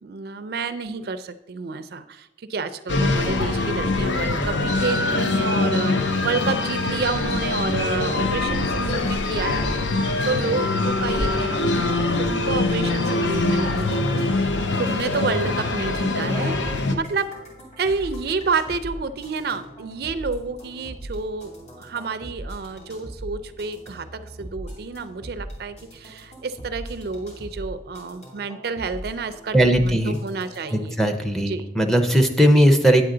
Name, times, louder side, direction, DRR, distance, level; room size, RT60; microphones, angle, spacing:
voice 1, 0.0-9.6 10.2-14.3 14.8-16.6 16.9-17.3 17.8-31.0 31.4-31.7, right 4 dB, 55° right, 11 dB, 0.4 m, -29 dB
sound 1, 2.9-16.9, left 2 dB, 75° left, 0.7 m, -23 dB
sound 2, 13.3-30.8, right 1 dB, 35° left, 2.4 m, -40 dB
voice 2, 29.5-30.2 30.7-33.0, equal, ahead, 4 dB, 0.5 m, -18 dB
9.0 x 7.7 x 3.8 m, 0.96 s
head